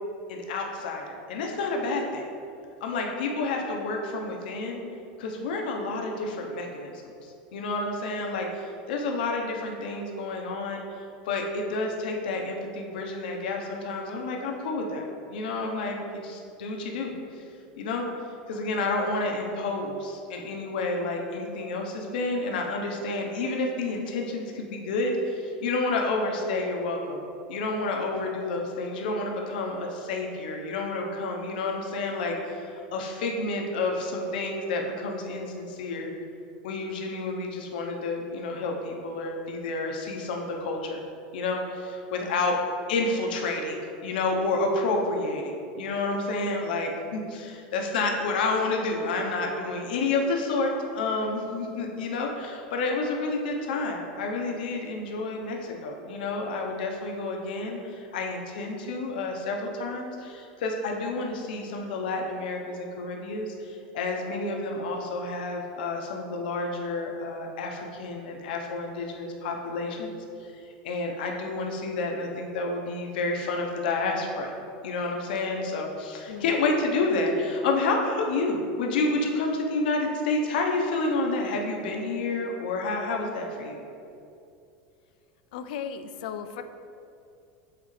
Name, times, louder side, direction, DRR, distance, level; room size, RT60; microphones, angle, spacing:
voice 1, 0.3-2.3 2.8-4.8 5.2-11.0 11.2-17.4 17.8-18.1 18.5-36.1 36.6-41.0 41.3-42.5 42.9-70.1 70.4-74.6 74.8-83.8, left 3 dB, 85° left, 1 dB, 0.9 m, -30 dB
voice 2, 42.2-42.5 76.3-76.6 85.5-86.6, left 8 dB, 65° left, 9 dB, 0.4 m, -37 dB
7.9 x 4.2 x 3.3 m, 2.6 s
supercardioid pair, 180°, 5 cm